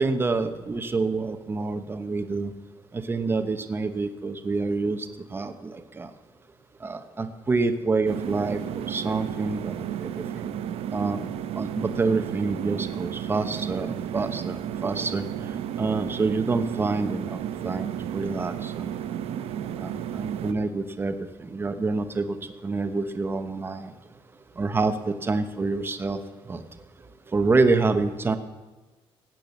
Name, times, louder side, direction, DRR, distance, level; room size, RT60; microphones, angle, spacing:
voice 1, 0.0-2.5 2.9-6.1 6.8-10.6 10.9-11.3 11.6-15.2 15.8-17.4 17.6-18.9 19.8-22.4 22.6-23.9 24.6-26.2 26.5-26.6 27.3-28.4, right 3 dB, 20° right, 9 dB, 1.0 m, -27 dB
sound 1, 8.1-20.5, right 10 dB, 85° right, 0.8 m, -33 dB
17.0 x 8.8 x 7.2 m, 1.3 s
cardioid pair, 160°, 10 cm